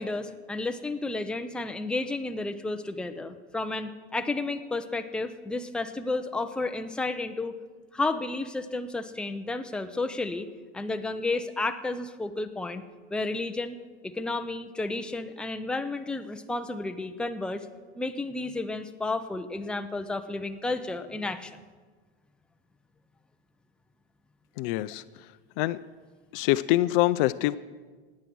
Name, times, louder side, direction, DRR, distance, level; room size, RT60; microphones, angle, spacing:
voice 1, 0.0-7.6 7.9-10.5 10.7-12.8 13.1-13.8 14.0-17.7 18.0-21.5, left 2 dB, 5° left, 7 dB, 0.6 m, -32 dB
voice 2, 24.6-25.0 25.6-25.8 26.3-27.6, left 17 dB, 50° left, 15 dB, 0.5 m, -24 dB
17.5 x 9.5 x 6.1 m, 1.4 s
supercardioid pair, 120°, 33 cm